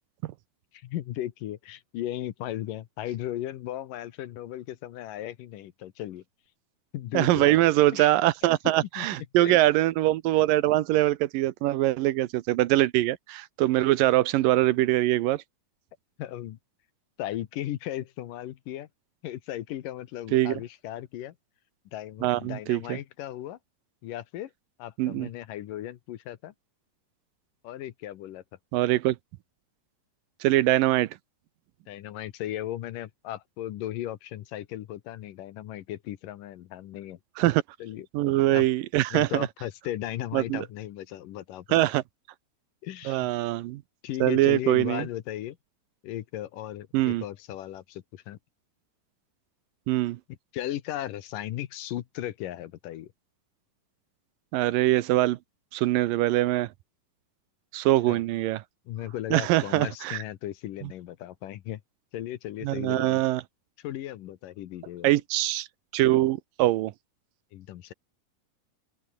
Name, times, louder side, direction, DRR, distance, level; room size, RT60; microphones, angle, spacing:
voice 1, 0.7-6.2 6.9-7.6 7.9-8.2 9.0-9.1 9.4-9.6 16.2-16.6 17.2-18.9 19.2-21.4 21.9-23.6 24.0-24.5 24.8-26.5 27.6-28.4 31.9-37.2 37.8-38.1 38.3-38.6 39.1-41.8 42.8-43.3 44.0-45.6 46.0-48.4 50.5-53.1 58.1-58.2 58.9-61.8 62.1-63.2 63.8-65.1 67.5-67.9, left 13 dB, 70° left, 2.6 m, -36 dB
voice 2, 7.1-15.4 20.3-20.5 22.2-23.0 25.0-25.3 28.7-29.2 30.4-31.2 37.4-37.6 38.1-39.5 40.3-40.7 41.7-42.0 43.1-43.8 44.2-45.1 46.9-47.2 49.9-50.2 54.5-55.4 55.7-56.7 57.7-58.6 59.3-60.2 62.6-63.4 65.0-65.7 65.9-66.9, right 16 dB, 80° right, 2.4 m, -23 dB
open air
omnidirectional pair, 4.2 m